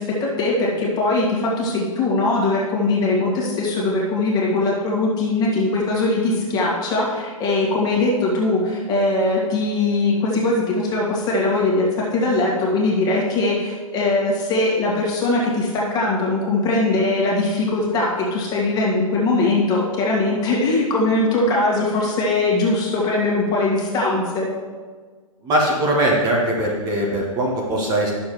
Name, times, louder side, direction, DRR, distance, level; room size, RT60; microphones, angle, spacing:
voice 1, 0.0-24.5, left 2 dB, 20° left, -3 dB, 1.9 m, -21 dB
voice 2, 25.4-28.1, right 1 dB, 20° right, -3 dB, 1.4 m, -20 dB
11.5 x 6.9 x 3.1 m, 1.5 s
figure-of-eight pair, 110°, 18 cm